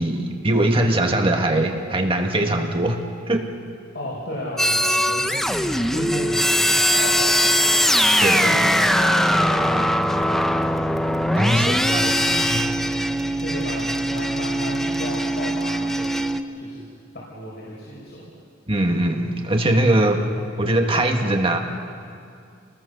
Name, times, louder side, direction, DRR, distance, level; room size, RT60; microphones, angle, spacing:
voice 1, 0.0-3.0 3.3-3.5 8.2-8.4 11.3-12.7 18.7-20.2 20.6-21.6, right 1 dB, 30° right, 3 dB, 1.6 m, -21 dB
voice 2, 3.9-7.8 8.4-10.9 11.4-12.1 13.4-16.8 17.1-18.3, equal, 55° left, -5 dB, 5.0 m, -34 dB
sound 1, 4.6-16.4, equal, ahead, 0.7 m, -21 dB
28.5 x 20.5 x 6.8 m, 2.3 s
head